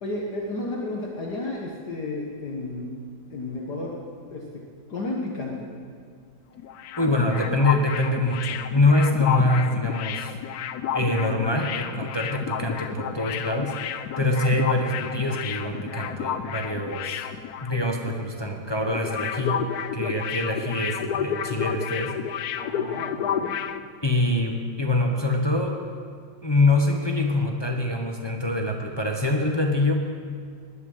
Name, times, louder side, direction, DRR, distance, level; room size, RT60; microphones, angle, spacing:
voice 1, 0.0-2.9 3.3-3.9 4.3-4.4 4.9-5.7 11.1-11.3 22.6-23.5, left 2 dB, 50° left, -2 dB, 1.9 m, -32 dB
sound 1, 6.6-18.1 18.4-18.5 18.8-23.8, left 8 dB, 80° left, 0.8 m, -31 dB
voice 2, 7.0-10.4 10.9-17.3 17.6-19.7 19.9-22.1 24.0-25.8 26.4-30.0, left 2 dB, 20° left, 1 dB, 0.7 m, -24 dB
19.0 x 11.0 x 5.6 m, 2.1 s
omnidirectional pair, 2.3 m